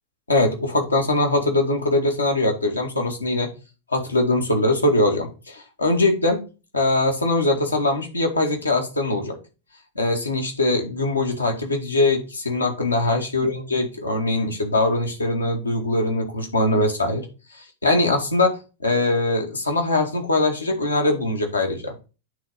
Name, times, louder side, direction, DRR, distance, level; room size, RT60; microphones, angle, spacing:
voice 1, 0.3-3.5 3.9-6.4 6.7-9.4 10.0-17.3 17.5-21.9, left 2 dB, 80° left, 2 dB, 2.2 m, -22 dB
9.0 x 4.0 x 5.0 m, 0.30 s
figure-of-eight pair, 90°, 0 cm